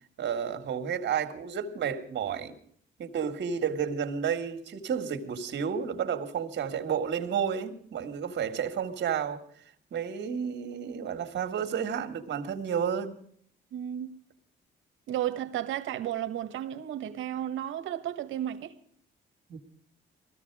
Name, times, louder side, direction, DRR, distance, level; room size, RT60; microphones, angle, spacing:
voice 1, 0.2-2.5 3.0-9.4 9.9-13.2 19.5-19.6, right 7 dB, 60° right, 2.1 m, -31 dB
voice 2, 13.7-14.1 15.1-18.7, right 11 dB, 80° right, 1.3 m, -33 dB
19.5 x 14.5 x 4.8 m
cardioid pair, 90°, 20 cm